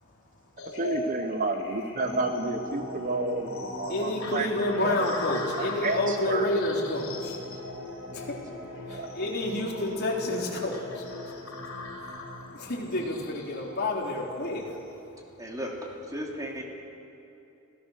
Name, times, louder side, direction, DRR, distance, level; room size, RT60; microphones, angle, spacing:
voice 1, 0.0-0.8 3.8-15.5, left 1 dB, 50° left, -2 dB, 3.7 m, -31 dB
sound 1, 0.6-14.8, left 2 dB, 70° left, 4.5 m, -40 dB
voice 2, 0.8-4.5 4.8-5.0 5.6-6.5 8.7-9.1, right 2 dB, 40° right, 7 dB, 0.8 m, -31 dB
sound 2, 1.9-13.2, left 1 dB, 70° right, 7.0 m, -43 dB
voice 3, 15.4-15.8 16.1-16.6, equal, 15° right, -1 dB, 3.0 m, -35 dB
26.0 x 16.5 x 6.6 m, 2.8 s
head